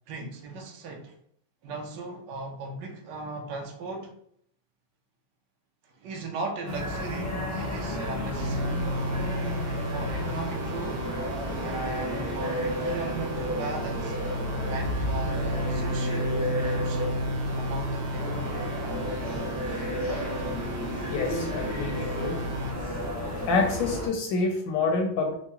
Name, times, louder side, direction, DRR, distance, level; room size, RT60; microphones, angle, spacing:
voice 1, 0.1-1.2 1.6-4.1 5.8-8.8 9.8-11.1 11.6-14.2 14.7-17.3 17.6-18.4, right 3 dB, 70° right, 3 dB, 1.1 m, -37 dB
sound 1, 6.6-24.1, left 1 dB, 20° left, 0.4 m, -32 dB
sound 2, 8.4-22.7, right 1 dB, 90° right, 1.5 m, -33 dB
voice 2, 21.0-22.4 23.5-25.4, left 3 dB, 75° left, 3 dB, 1.1 m, -27 dB
4.6 x 2.1 x 2.8 m, 0.66 s
omnidirectional pair, 2.3 m